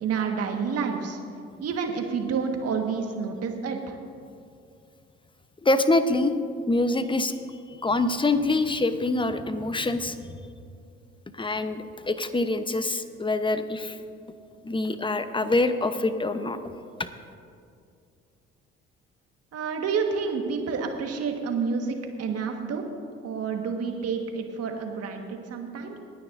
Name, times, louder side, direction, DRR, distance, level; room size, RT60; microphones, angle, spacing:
voice 1, 0.0-1.2 1.6-3.9 19.5-22.8 23.2-26.0, right 5 dB, 55° right, 3 dB, 1.7 m, -29 dB
voice 2, 5.6-6.3 6.7-7.3 7.8-10.3 11.3-14.0 14.6-16.7, left 2 dB, 15° left, 10 dB, 1.0 m, -25 dB
26.5 x 9.7 x 2.7 m, 2.4 s
hypercardioid pair, 55°, 30 cm